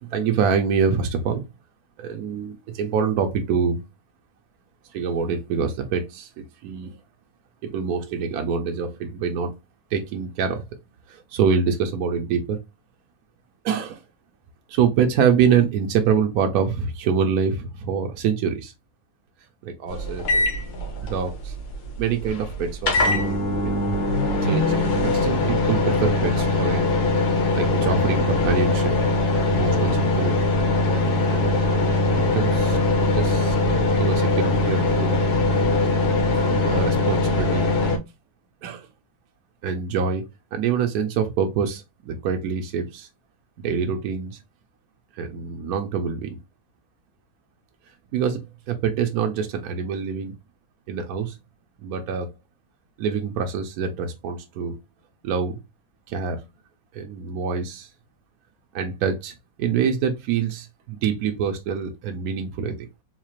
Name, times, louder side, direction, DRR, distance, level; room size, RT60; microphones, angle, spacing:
voice 1, 0.0-1.4 2.0-3.8 4.9-7.0 7.6-9.6 9.9-10.6 11.1-12.6 13.6-14.0 14.7-18.7 19.6-20.6 21.0-21.5 22.0-23.7 24.4-26.9 27.5-28.9 29.5-30.3 31.3-31.5 32.2-33.6 33.8-35.4 36.5-37.7 38.6-38.9 39.6-40.2 40.5-43.1 43.6-44.4 45.2-46.4 48.1-50.3 50.9-51.4 51.8-52.3 53.0-54.8 55.2-55.6 56.1-56.4 56.9-57.9 58.7-62.7, right 6 dB, 70° right, 1.1 m, -25 dB
sound 1, 19.9-38.0, left 2 dB, 80° left, 1.4 m, -21 dB
3.9 x 2.4 x 3.0 m
omnidirectional pair, 1.7 m